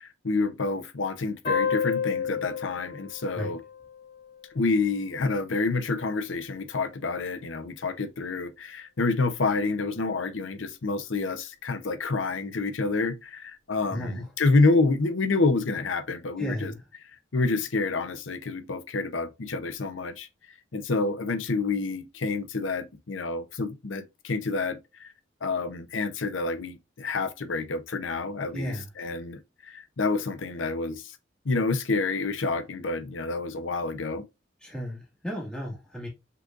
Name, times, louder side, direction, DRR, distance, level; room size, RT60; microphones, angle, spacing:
voice 1, 0.0-3.6 4.5-16.7 17.3-20.3 20.7-25.1 25.4-31.2 31.4-34.2, left 3 dB, 85° left, 0.8 m, -28 dB
sound 1, 1.4-4.6, left 6 dB, 65° left, 2.3 m, -31 dB
voice 2, 13.9-14.3 16.4-16.8 28.5-28.9 34.6-36.1, equal, 5° left, 1.9 m, -34 dB
5.6 x 3.8 x 2.5 m
head